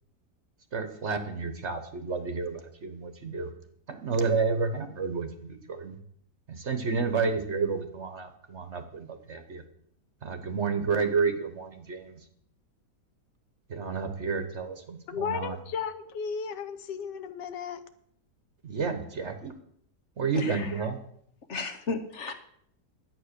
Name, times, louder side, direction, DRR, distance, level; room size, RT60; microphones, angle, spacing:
voice 1, 0.7-3.5 3.9-6.0 6.5-9.6 10.2-12.2 13.7-15.6 18.6-19.6 20.2-21.0, right 5 dB, 45° right, 8 dB, 1.3 m, -30 dB
voice 2, 15.1-17.8, left 6 dB, 80° left, 11 dB, 1.5 m, -34 dB
voice 3, 21.5-22.3, left 3 dB, 45° left, 8 dB, 1.2 m, -34 dB
11.0 x 8.6 x 6.7 m, 0.68 s
omnidirectional pair, 1.8 m